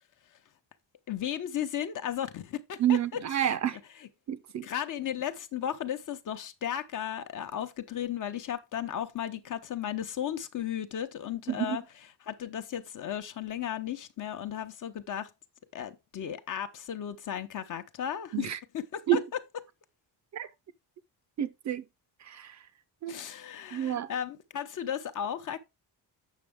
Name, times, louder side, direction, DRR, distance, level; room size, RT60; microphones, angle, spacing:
voice 1, 1.1-3.6 4.0-4.1 4.6-11.8 12.2-15.3 15.7-18.5 18.7-19.2 23.1-25.6, left 9 dB, 50° left, 0.9 m, -35 dB
voice 2, 2.8-3.8 4.3-4.7 11.5-11.8 18.3-18.6 19.1-19.2 20.3-20.5 21.4-21.8 22.2-22.6 23.0-23.2 23.7-24.1, right 11 dB, 45° right, 0.5 m, -29 dB
8.2 x 6.3 x 3.5 m
cardioid pair, 180°, 41 cm